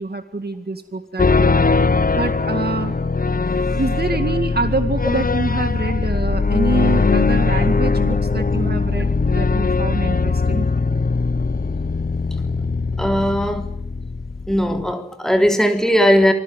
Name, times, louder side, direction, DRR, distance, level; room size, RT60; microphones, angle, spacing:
voice 1, 0.0-1.5 2.2-3.0 3.7-10.7, right 3 dB, 60° right, 2.1 m, -26 dB
sound 1, 1.2-14.9, left 4 dB, 55° left, 1.0 m, -20 dB
voice 2, 13.0-13.7 14.5-16.3, equal, 5° left, 3.5 m, -18 dB
26.5 x 20.5 x 9.2 m
wide cardioid pair, 55°, 18 cm